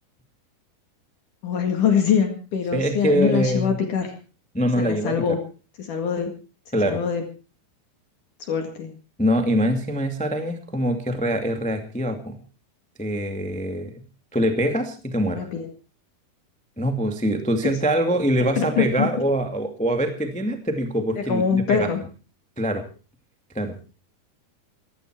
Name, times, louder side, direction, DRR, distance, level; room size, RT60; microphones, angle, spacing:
voice 1, 1.4-4.1 4.8-5.4 5.8-6.3 6.8-7.2 8.4-8.9 15.3-15.7 17.6-17.7 18.6-19.1 21.2-22.0, left 7 dB, 60° left, 4 dB, 3.2 m, -23 dB
voice 2, 2.7-3.7 4.5-5.2 6.7-7.0 9.2-12.4 13.0-13.9 14.3-15.5 16.8-21.9 22.6-22.8 23.5-23.7, equal, 10° left, 6 dB, 0.4 m, -24 dB
16.5 x 15.5 x 4.6 m, 0.36 s
omnidirectional pair, 4.5 m